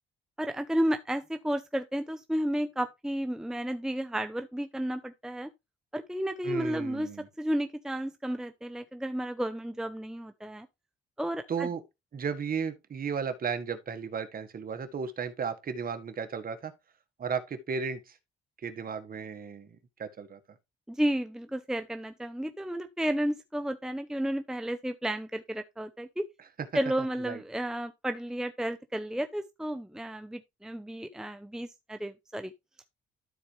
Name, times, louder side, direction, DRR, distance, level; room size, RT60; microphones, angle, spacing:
voice 1, 0.4-5.5 5.9-7.1 7.4-10.7 11.2-11.7 20.9-26.3 26.7-32.5, equal, 5° right, 0.7 m, -32 dB
voice 2, 6.4-7.3 11.5-11.8 12.1-16.7 17.2-18.2 18.6-20.4 27.2-27.4, right 6 dB, 45° right, 1.5 m, -34 dB
13.0 x 4.3 x 3.2 m
cardioid pair, 90°, 20 cm